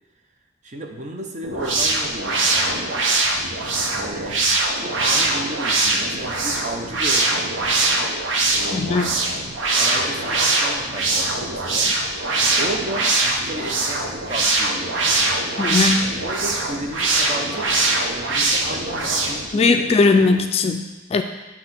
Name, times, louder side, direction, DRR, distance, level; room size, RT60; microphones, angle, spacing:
voice 1, 0.6-2.9 4.0-4.4 4.7-7.5 8.5-8.9 9.7-12.0 12.6-15.7 16.2-17.7 18.1-20.5, right 1 dB, 40° right, 2 dB, 0.7 m, -33 dB
sound 1, 1.4-19.5, right 2 dB, 85° right, 0.9 m, -22 dB
voice 2, 8.7-9.1 15.6-16.1 19.5-21.2, left 3 dB, 30° left, 6 dB, 0.3 m, -19 dB
7.8 x 2.9 x 5.9 m, 1.2 s
head